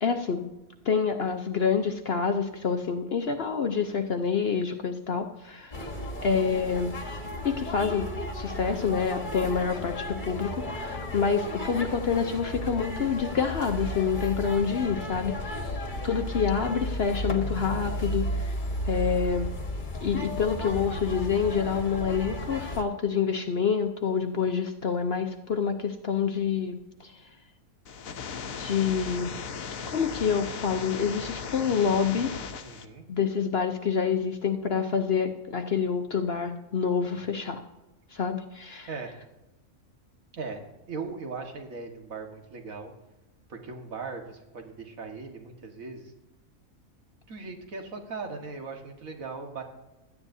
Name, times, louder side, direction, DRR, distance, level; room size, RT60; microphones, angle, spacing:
voice 1, 0.0-0.5 0.8-5.7 6.2-6.9 7.4-15.8 16.0-18.6 18.9-19.5 20.0-27.1 28.6-29.3 29.9-32.3 33.1-37.6 38.1-38.9, left 6 dB, 50° left, 5 dB, 0.9 m, -27 dB
sound 1, 5.7-22.8, equal, 35° left, 1.5 m, -34 dB
voice 2, 5.7-6.1 15.6-15.8 32.6-33.0 37.0-37.2 38.9-39.1 40.3-42.9 43.5-46.1 47.3-49.6, right 4 dB, 70° right, 3 dB, 2.0 m, -39 dB
sound 2, 27.9-32.9, left 6 dB, 75° left, 1.3 m, -37 dB
17.0 x 12.5 x 2.7 m, 1.0 s
omnidirectional pair, 1.5 m